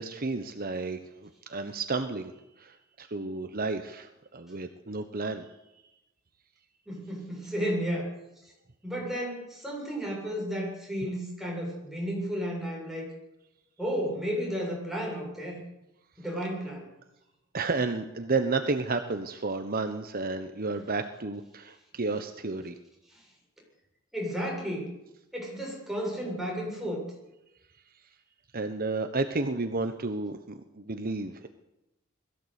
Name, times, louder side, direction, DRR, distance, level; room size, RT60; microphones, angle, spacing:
voice 1, 0.0-2.3 2.6-5.5 17.5-22.7 28.5-31.5, right 3 dB, 45° right, 8 dB, 1.2 m, -32 dB
voice 2, 6.9-8.1 8.8-13.1 13.8-15.6 16.2-16.9 23.1-23.2 24.1-24.9 25.3-27.0, equal, ahead, -2 dB, 7.7 m, -33 dB
21.5 x 15.5 x 8.4 m, 0.92 s
head